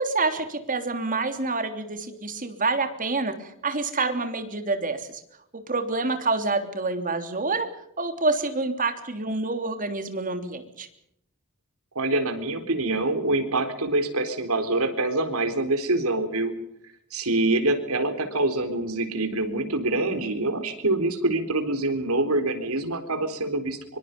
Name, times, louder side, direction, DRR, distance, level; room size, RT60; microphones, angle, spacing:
voice 1, 0.0-5.1 5.5-7.7 8.0-10.9, right 3 dB, 40° right, 7 dB, 3.3 m, -27 dB
voice 2, 12.0-16.5 17.1-24.0, right 2 dB, 85° right, 8 dB, 4.1 m, -25 dB
25.0 x 24.5 x 5.4 m, 0.75 s
head